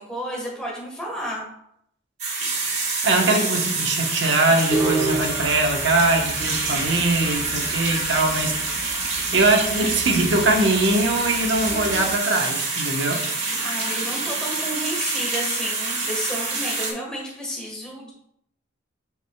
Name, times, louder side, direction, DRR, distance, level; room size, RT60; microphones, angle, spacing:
voice 1, 0.0-1.5 13.6-18.1, equal, 5° left, -4 dB, 1.4 m, -31 dB
sound 1, 2.2-16.9, right 3 dB, 35° right, 1.3 m, -27 dB
voice 2, 3.0-9.0 9.3-13.2, right 2 dB, 65° right, 3 dB, 1.0 m, -22 dB
sound 2, 4.7-12.1, right 2 dB, 15° right, 0.5 m, -31 dB
8.4 x 4.9 x 2.3 m, 0.73 s
head